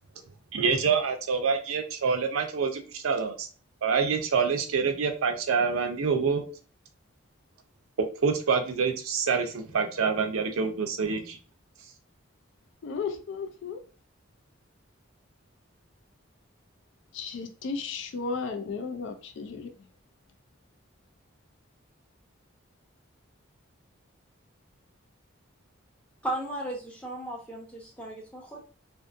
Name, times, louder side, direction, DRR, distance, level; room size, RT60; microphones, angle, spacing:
voice 1, 0.5-3.5 3.8-6.4 8.0-11.4, right 5 dB, 80° right, 0.5 m, -26 dB
voice 2, 12.8-13.8 17.1-19.7, left 5 dB, 60° left, 0.3 m, -34 dB
voice 3, 26.2-28.6, right 1 dB, 5° left, 0.6 m, -35 dB
2.5 x 2.5 x 2.4 m
head